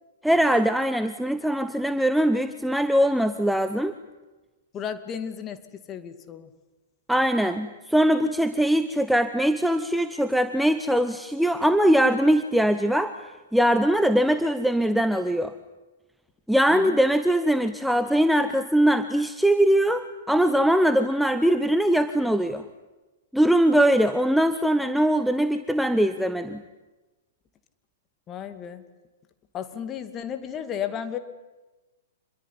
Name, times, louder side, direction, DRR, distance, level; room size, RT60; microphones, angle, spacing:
voice 1, 0.2-3.9 7.1-13.2 13.5-15.5 16.5-22.6 23.3-26.6, right 1 dB, ahead, 10 dB, 1.0 m, -21 dB
voice 2, 4.7-5.6 5.9-6.5 16.7-17.0 28.3-28.8 29.5-31.2, left 8 dB, 25° left, 10 dB, 2.4 m, -33 dB
27.0 x 22.0 x 9.9 m, 1.1 s
figure-of-eight pair, 110°, 0 cm